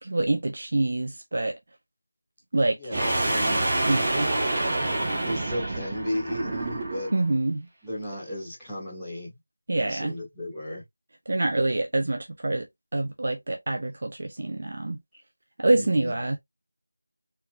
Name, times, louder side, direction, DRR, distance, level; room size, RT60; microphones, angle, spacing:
voice 1, 0.0-1.6 2.5-2.8 3.8-4.3 7.1-7.7 9.7-10.1 11.3-12.7 12.9-15.0 15.6-16.4, right 2 dB, 45° right, 0.9 m, -26 dB
voice 2, 2.8-3.6 5.2-7.1 7.8-9.3 9.8-10.8 15.7-16.2, equal, ahead, 2.5 m, -34 dB
sound 1, 2.9-7.2, right 2 dB, 20° right, 1.6 m, -27 dB
4.5 x 4.0 x 2.6 m
figure-of-eight pair, 175°, 0 cm